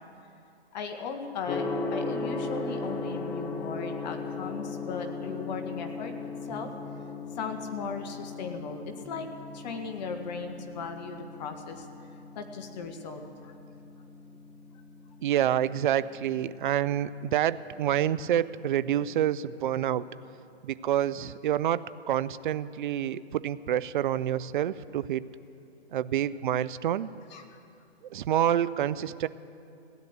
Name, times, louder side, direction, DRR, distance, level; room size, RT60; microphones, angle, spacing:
voice 1, 0.7-6.1 6.4-6.7 7.3-9.3 9.5-13.6 27.3-27.6, left 5 dB, 40° left, 5 dB, 1.6 m, -37 dB
Gong, 1.5-19.3, left 3 dB, 5° left, 0.4 m, -39 dB
voice 2, 15.2-20.1 20.6-25.2 25.9-27.1 28.0-29.3, right 11 dB, 50° right, 16 dB, 0.5 m, -28 dB
16.5 x 10.5 x 8.1 m, 2.5 s
hypercardioid pair, 140°, 33 cm